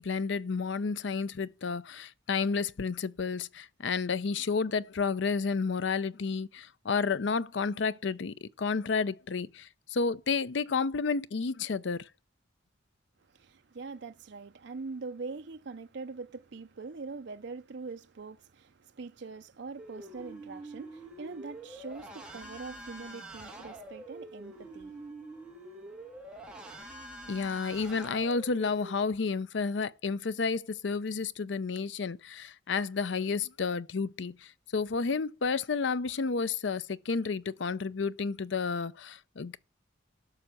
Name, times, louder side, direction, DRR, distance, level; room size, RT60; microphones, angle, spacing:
voice 1, 0.0-12.1 27.3-39.6, left 4 dB, 70° left, 0.5 m, -31 dB
voice 2, 13.3-25.1, right 4 dB, 60° right, 0.6 m, -43 dB
sound 1, 19.8-29.0, right 2 dB, 5° right, 2.5 m, -46 dB
11.5 x 6.5 x 7.6 m
head